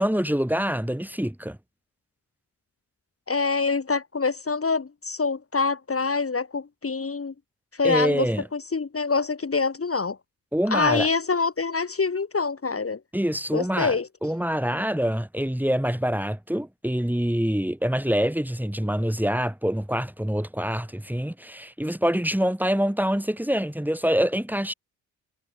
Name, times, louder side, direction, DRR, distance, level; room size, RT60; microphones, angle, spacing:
voice 1, 0.0-1.6 7.8-8.4 10.5-11.1 13.1-24.7, equal, 5° right, 4.1 m, -25 dB
voice 2, 3.3-7.3 7.8-10.2 10.7-13.0 13.5-14.1, left 4 dB, 30° left, 3.1 m, -25 dB
hypercardioid pair, 50°, 43 cm